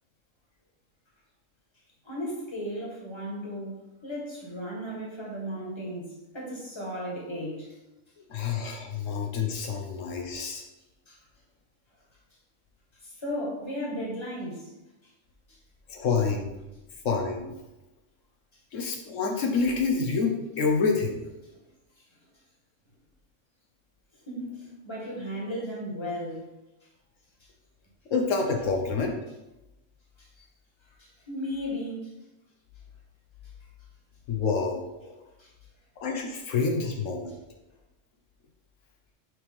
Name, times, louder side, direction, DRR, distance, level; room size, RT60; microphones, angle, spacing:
voice 1, 2.0-6.1 6.3-7.7 11.1-11.2 13.0-14.7 24.3-26.4 30.2-30.3 31.0-32.1 35.4-35.5, equal, 20° left, -3 dB, 1.5 m, -35 dB
voice 2, 8.3-10.6 15.9-16.5 17.0-17.5 18.7-21.2 28.1-29.1 34.3-35.1 36.0-37.4, left 4 dB, 80° left, 2 dB, 1.2 m, -27 dB
6.4 x 3.2 x 5.2 m, 0.99 s
omnidirectional pair, 1.3 m